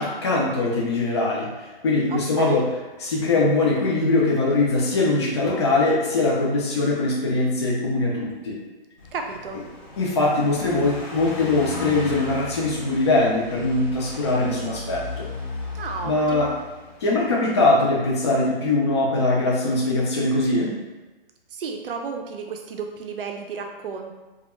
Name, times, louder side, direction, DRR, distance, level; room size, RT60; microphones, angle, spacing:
voice 1, 0.0-2.7 3.0-8.6 10.0-15.3 16.0-16.5 17.0-20.7, left 2 dB, 30° left, -3 dB, 0.4 m, -22 dB
voice 2, 2.1-2.7 9.1-9.6 15.7-16.5 21.5-24.1, right 5 dB, 70° right, 4 dB, 0.5 m, -33 dB
Car passing by, 9.0-17.4, left 2 dB, 60° left, 1.0 m, -36 dB
2.3 x 2.2 x 2.9 m, 1.1 s
hypercardioid pair, 160°, 29 cm